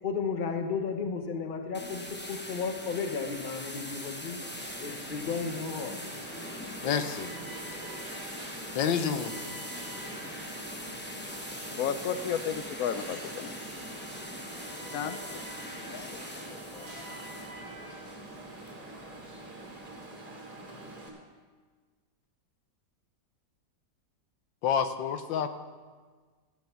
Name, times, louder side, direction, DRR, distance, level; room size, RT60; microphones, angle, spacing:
voice 1, 0.0-4.4 4.8-5.9, left 5 dB, 35° left, 1.0 m, -33 dB
sound 1, 1.7-20.1, left 1 dB, 10° left, 0.6 m, -42 dB
Alarm, 4.4-21.1, right 2 dB, 45° right, 2.9 m, -44 dB
voice 2, 6.8-7.3 8.7-9.4 24.6-25.5, left 7 dB, 90° left, 1.5 m, -28 dB
voice 3, 11.7-13.6 14.9-15.4 15.8-16.4 16.7-17.0, left 8 dB, 70° left, 0.9 m, -34 dB
14.5 x 9.5 x 5.8 m
omnidirectional pair, 2.0 m